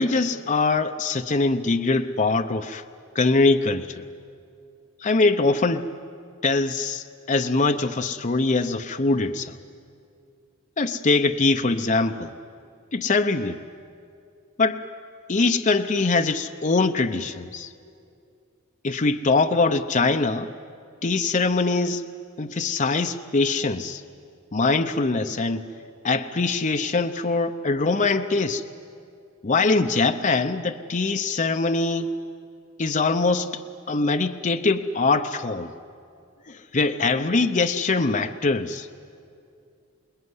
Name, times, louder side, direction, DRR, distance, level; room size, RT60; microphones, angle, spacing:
voice 1, 0.0-2.8 3.1-4.0 5.0-5.9 6.4-9.6 10.8-12.3 12.9-13.6 14.6-14.8 15.3-17.7 18.8-20.5 21.0-22.0 22.4-24.0 24.5-25.7 26.0-28.6 29.4-32.1 32.8-33.6 33.9-35.7 36.5-38.9, left 3 dB, 40° left, 6 dB, 0.7 m, -23 dB
27.5 x 20.5 x 9.7 m, 2.5 s
head